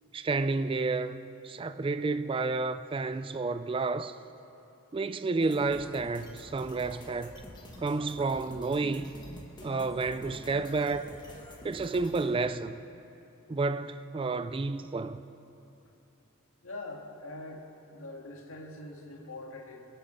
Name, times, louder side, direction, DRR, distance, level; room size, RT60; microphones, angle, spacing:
voice 1, 0.1-1.2 1.4-4.2 4.9-7.3 7.8-9.1 9.6-11.1 11.6-12.8 13.5-15.2, right 3 dB, 25° right, 0.4 m, -30 dB
sound 1, 5.4-12.3, left 1 dB, 20° left, 1.8 m, -47 dB
voice 2, 16.6-17.6 17.9-19.8, left 2 dB, 75° left, 2.0 m, -43 dB
25.5 x 9.0 x 5.6 m
head